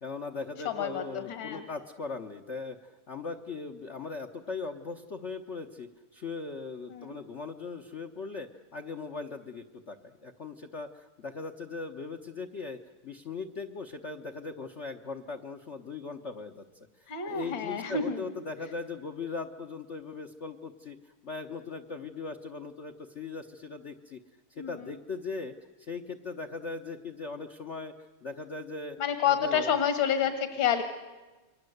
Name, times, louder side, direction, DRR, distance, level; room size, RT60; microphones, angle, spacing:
voice 1, 0.0-24.2 24.5-29.0 29.2-29.8 30.2-30.3, left 4 dB, 45° left, 7 dB, 1.0 m, -39 dB
voice 2, 0.6-1.6 6.9-7.2 17.1-18.2 24.6-24.9 29.0-30.8, left 8 dB, 65° left, 8 dB, 2.4 m, -29 dB
29.0 x 22.5 x 7.9 m, 1.2 s
omnidirectional pair, 2.4 m